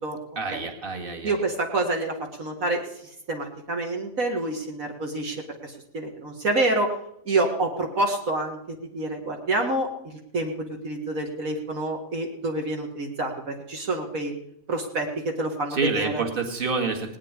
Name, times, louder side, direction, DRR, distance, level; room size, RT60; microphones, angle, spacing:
voice 1, 0.4-1.3 15.7-17.2, right 4 dB, 35° right, 3 dB, 2.2 m, -27 dB
voice 2, 1.2-6.9 7.3-14.3 14.7-16.2, right 2 dB, 60° right, 1 dB, 2.1 m, -28 dB
18.5 x 7.5 x 9.9 m, 0.76 s
omnidirectional pair, 1.6 m